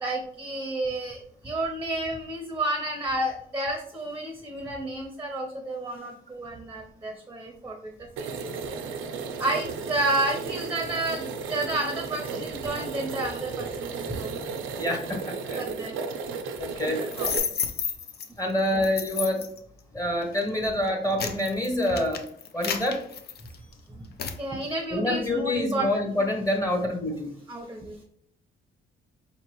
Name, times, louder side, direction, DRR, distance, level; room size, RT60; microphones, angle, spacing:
voice 1, 0.0-8.5 9.4-14.4 15.5-15.9 16.9-17.3 23.9-24.1 24.4-25.9 27.5-28.0, right 2 dB, 10° right, 1 dB, 0.7 m, -31 dB
sound 1, 8.2-17.4, right 5 dB, 85° right, 0.6 m, -34 dB
voice 2, 14.7-15.6 16.6-17.0 18.4-19.5 19.9-22.2 22.5-23.0 24.9-27.3, left 1 dB, 15° left, 2 dB, 1.0 m, -27 dB
sound 2, 17.1-18.3 18.8-19.6 20.2-20.4 20.9-23.7 24.2-24.4, left 7 dB, 55° left, 0.5 m, -31 dB
4.5 x 2.9 x 3.0 m, 0.65 s
cardioid pair, 90°, 20 cm